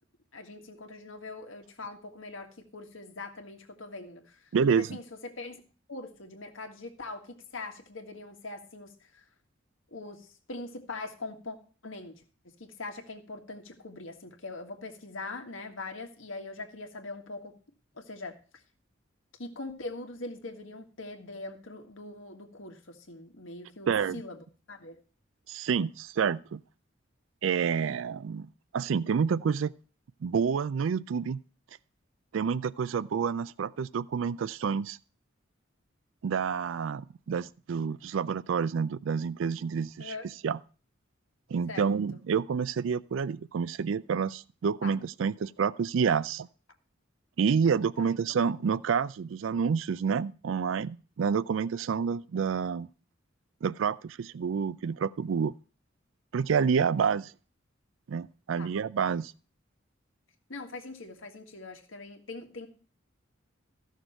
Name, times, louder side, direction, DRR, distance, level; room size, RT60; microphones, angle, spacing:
voice 1, 0.3-5.6 5.9-9.2 9.9-11.6 11.8-17.5 18.0-18.4 19.4-24.4 24.7-25.0 40.0-40.3 41.7-41.9 42.1-42.2 44.8-44.9 48.0-48.1 58.6-58.7 60.5-62.7, left 3 dB, 90° left, 1.8 m, -42 dB
voice 2, 4.5-5.0 23.9-24.2 25.5-26.6 27.4-29.7 30.2-31.4 32.3-35.0 36.2-40.1 40.4-40.6 41.5-46.5 47.4-52.9 53.6-55.5 56.3-57.3 58.1-59.3, right 6 dB, 80° right, 0.4 m, -28 dB
14.5 x 6.5 x 4.5 m
head